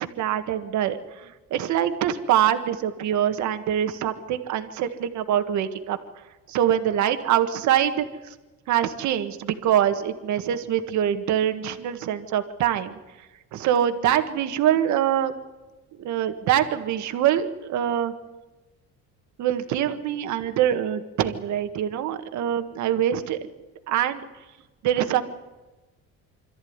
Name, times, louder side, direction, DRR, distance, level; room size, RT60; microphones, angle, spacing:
voice 1, 0.0-6.0 6.5-8.3 8.7-13.0 13.5-15.3 16.0-18.1 19.4-23.4 23.9-24.2 24.8-25.3, right 10 dB, 70° right, 8 dB, 1.8 m, -24 dB
25.5 x 14.0 x 9.7 m, 1.2 s
cardioid pair, 130°, 30 cm